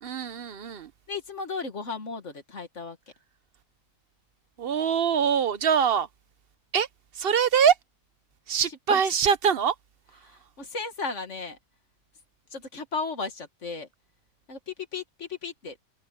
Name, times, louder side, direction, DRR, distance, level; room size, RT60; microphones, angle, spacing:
voice 1, 0.0-0.9 4.6-6.1 6.7-6.9 7.1-7.8 8.5-9.8, right 7 dB, 50° right, 0.8 m, -23 dB
voice 2, 1.1-3.0 8.9-9.0 10.2-11.6 12.5-13.9 14.5-15.8, left 4 dB, 55° left, 2.0 m, -35 dB
omnidirectional pair, 1.5 m